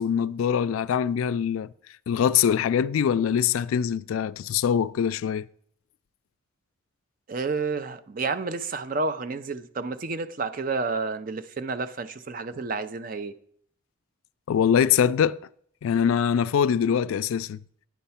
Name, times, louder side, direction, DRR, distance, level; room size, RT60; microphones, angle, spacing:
voice 1, 0.0-1.7 2.1-5.5 14.5-15.4 15.8-17.6, left 8 dB, 85° left, 0.3 m, -23 dB
voice 2, 7.3-13.3, right 4 dB, 40° right, 0.4 m, -30 dB
9.4 x 4.5 x 5.6 m
head